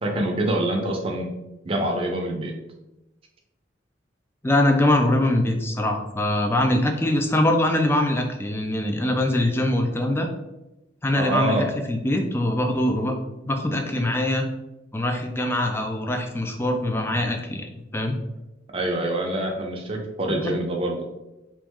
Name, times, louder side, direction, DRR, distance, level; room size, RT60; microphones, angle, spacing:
voice 1, 0.0-1.3 1.6-2.5 11.2-11.7 18.7-21.0, right 1 dB, 30° right, 1 dB, 0.6 m, -25 dB
voice 2, 4.4-10.3 11.0-13.2 13.5-14.5 14.9-18.1 20.4-20.5, left 1 dB, 10° left, 4 dB, 0.4 m, -23 dB
3.4 x 3.0 x 3.6 m, 0.95 s
head